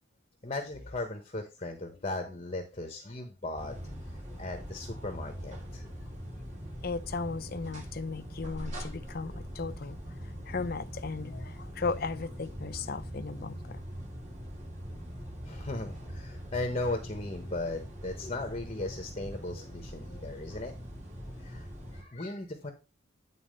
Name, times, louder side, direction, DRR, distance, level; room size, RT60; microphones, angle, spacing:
voice 1, 0.4-3.9 4.3-5.9 15.4-20.7 21.4-22.7, left 2 dB, 30° left, 1.0 m, -37 dB
sound 1, 3.6-22.0, equal, 35° right, 2.1 m, -42 dB
voice 2, 6.8-10.0 10.5-13.8, left 4 dB, 45° left, 0.6 m, -36 dB
9.4 x 4.1 x 5.2 m
head